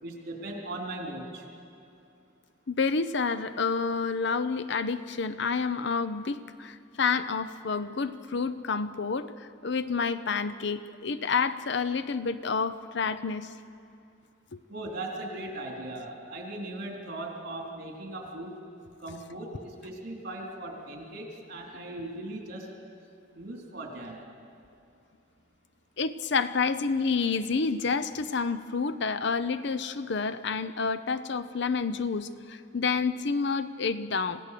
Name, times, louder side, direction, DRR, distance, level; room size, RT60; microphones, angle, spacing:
voice 1, 0.0-1.5 14.7-18.6 19.0-22.7 23.3-24.2, right 1 dB, 55° right, 1 dB, 3.7 m, -38 dB
voice 2, 2.7-13.5 14.5-14.6 26.0-34.4, left 5 dB, 65° left, 13 dB, 0.7 m, -29 dB
27.0 x 16.5 x 6.8 m, 2.6 s
head